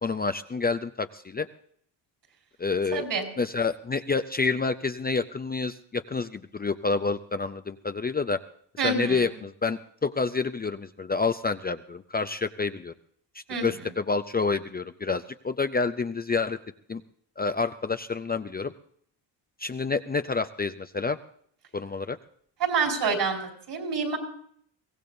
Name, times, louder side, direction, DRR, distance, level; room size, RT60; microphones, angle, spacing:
voice 1, 0.0-1.5 2.6-3.1 3.4-8.4 8.8-12.9 13.3-16.6 16.9-17.0 17.4-18.7 19.6-21.2 21.7-22.2, left 4 dB, 20° left, 10 dB, 0.5 m, -28 dB
voice 2, 2.9-3.3 8.8-9.2 13.5-13.7 22.6-24.2, right 4 dB, 65° right, 0 dB, 4.4 m, -27 dB
23.0 x 16.0 x 2.6 m, 0.62 s
cardioid pair, 85°, 44 cm